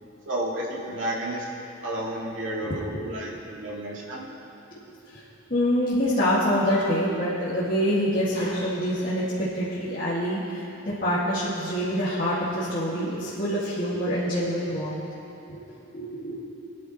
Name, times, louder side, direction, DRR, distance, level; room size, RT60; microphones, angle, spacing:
voice 1, 0.3-1.4 1.8-4.3, right 1 dB, 75° right, -4 dB, 2.4 m, -31 dB
voice 2, 2.6-3.1 4.7-4.8 5.1-5.2 5.5-15.0 15.5-15.6 15.9-16.4, equal, 45° left, -11 dB, 2.3 m, -26 dB
23.0 x 10.5 x 3.2 m, 2.9 s
head